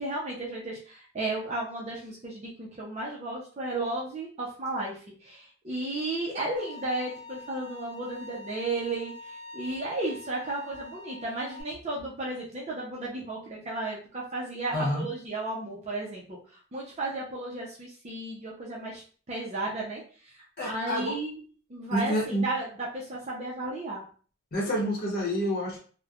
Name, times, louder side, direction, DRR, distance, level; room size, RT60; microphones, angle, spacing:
voice 1, 0.0-19.0 19.3-21.4 21.7-24.0, right 2 dB, 30° right, -4 dB, 0.5 m, -34 dB
Bowed string instrument, 6.5-11.6, left 2 dB, 30° left, 1.3 m, -45 dB
voice 2, 14.7-15.1 20.6-21.2 21.9-22.5 24.5-25.8, equal, 45° left, -3 dB, 0.9 m, -28 dB
3.0 x 2.1 x 2.4 m, 0.41 s
head